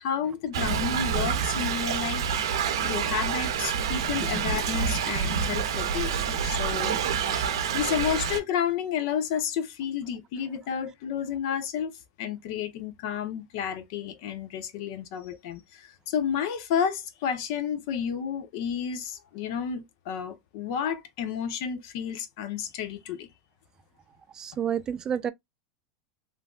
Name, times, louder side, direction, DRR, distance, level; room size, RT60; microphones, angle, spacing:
voice 1, 0.0-2.2 2.8-23.3, left 8 dB, 60° left, 0.7 m, -31 dB
Thunder / Rain, 0.5-8.4, right 7 dB, 85° right, 0.7 m, -27 dB
voice 2, 24.3-25.3, right 8 dB, 25° right, 0.3 m, -29 dB
3.2 x 2.6 x 2.3 m
supercardioid pair, 135°, 3 cm